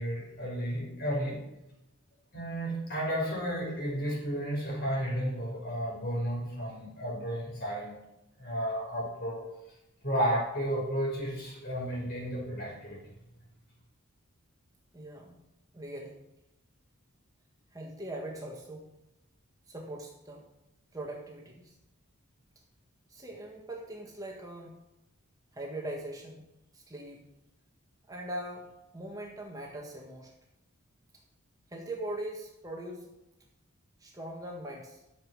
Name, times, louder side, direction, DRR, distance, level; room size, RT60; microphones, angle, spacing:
voice 1, 0.0-1.4 2.3-7.9 8.4-9.4 10.0-13.0, equal, 45° left, -3 dB, 5.4 m, -32 dB
voice 2, 14.9-15.4 15.7-16.2 17.7-18.9 19.7-20.4 20.9-21.7 23.1-24.7 25.5-26.5 26.7-27.3 28.1-30.3 31.7-33.1 34.0-35.0, right 1 dB, 15° right, -1 dB, 1.5 m, -41 dB
12.0 x 7.2 x 6.2 m, 0.90 s
head